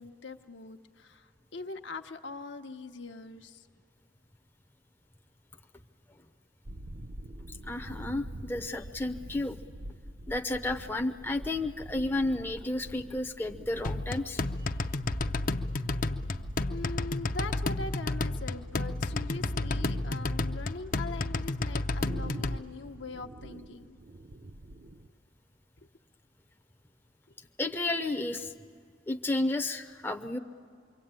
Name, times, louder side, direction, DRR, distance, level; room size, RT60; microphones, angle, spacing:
voice 1, 0.0-3.7 16.7-24.0 25.8-25.9 27.3-27.4, left 3 dB, 70° left, 5 dB, 1.0 m, -42 dB
sound 1, 6.6-25.1, right 1 dB, 45° right, 0.7 m, -46 dB
voice 2, 7.5-9.6 10.3-14.4 27.6-28.5 29.1-30.4, left 2 dB, 10° left, 5 dB, 0.6 m, -32 dB
sound 2, 13.8-22.6, left 2 dB, 45° left, 0.6 m, -31 dB
26.0 x 23.5 x 8.9 m, 2.1 s
head